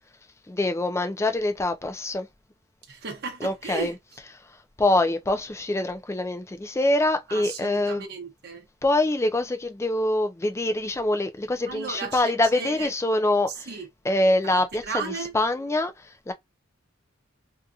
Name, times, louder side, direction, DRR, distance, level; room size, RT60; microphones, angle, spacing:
voice 1, 0.5-2.3 3.4-3.9 4.8-8.0 8.8-13.7 14.0-16.3, left 1 dB, 15° left, 0.4 m, -25 dB
voice 2, 2.9-3.9 7.3-8.7 11.7-12.9 13.5-13.9 14.5-15.3, right 5 dB, 55° right, 0.8 m, -35 dB
2.7 x 2.5 x 2.3 m
head